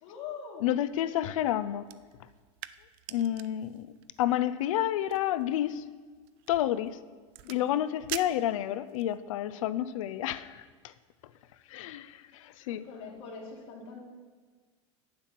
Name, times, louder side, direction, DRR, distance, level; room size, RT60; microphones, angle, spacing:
voice 1, 0.0-0.7 7.4-7.7 12.8-14.0, left 5 dB, 65° left, -2 dB, 2.3 m, -43 dB
voice 2, 0.6-1.9 3.1-3.9 4.2-5.9 6.5-7.0 7.5-10.9 11.7-12.9, left 12 dB, 80° left, 14 dB, 0.5 m, -30 dB
sound 1, 1.8-9.2, right 15 dB, 50° right, 0.4 m, -47 dB
8.5 x 7.5 x 5.9 m, 1.5 s
supercardioid pair, 145°, 17 cm